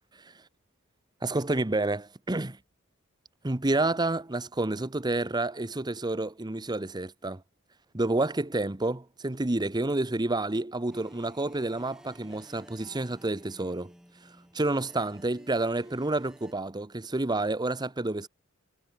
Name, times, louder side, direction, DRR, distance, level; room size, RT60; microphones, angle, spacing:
voice 1, 1.2-2.6 3.4-7.4 7.9-13.9 14.2-18.3, right 2 dB, 20° right, 0.9 m, -29 dB
sound 1, 10.9-16.5, equal, 5° right, 6.4 m, -55 dB
head